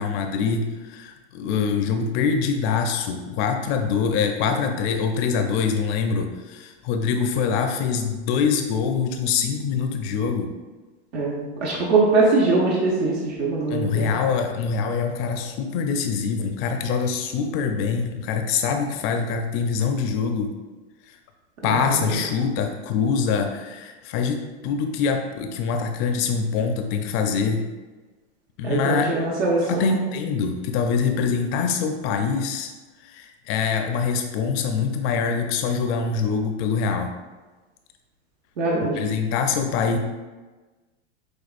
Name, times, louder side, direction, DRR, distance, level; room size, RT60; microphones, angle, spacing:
voice 1, 0.0-10.5 13.7-20.5 21.1-21.2 21.6-27.6 28.6-29.1 29.7-32.7 33.0-37.1 39.0-40.0, left 5 dB, 40° left, 5 dB, 0.4 m, -24 dB
voice 2, 11.1-14.1 21.6-22.2 28.6-30.0 38.6-39.0, right 3 dB, 80° right, -4 dB, 0.9 m, -22 dB
6.2 x 2.3 x 2.5 m, 1.2 s
hypercardioid pair, 115°, 32 cm